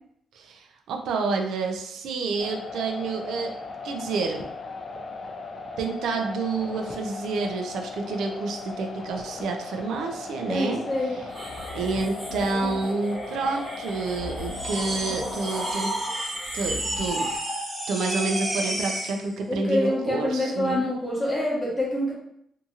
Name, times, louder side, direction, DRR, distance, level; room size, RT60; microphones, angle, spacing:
voice 1, 0.3-3.5 3.8-4.5 5.8-10.8 11.7-15.9 16.5-17.3 17.9-20.8, right 3 dB, 85° right, 3 dB, 0.4 m, -29 dB
sound 1, 2.4-15.7, left 3 dB, 35° left, 0.3 m, -38 dB
voice 2, 10.5-11.2 19.5-22.1, left 1 dB, 5° left, -6 dB, 0.9 m, -26 dB
sound 2, 11.3-17.4, equal, 50° right, 1.1 m, -38 dB
sound 3, 14.5-19.2, right 1 dB, 15° right, 0.5 m, -30 dB
2.7 x 2.6 x 2.4 m, 0.72 s
cardioid pair, 165°, 0 cm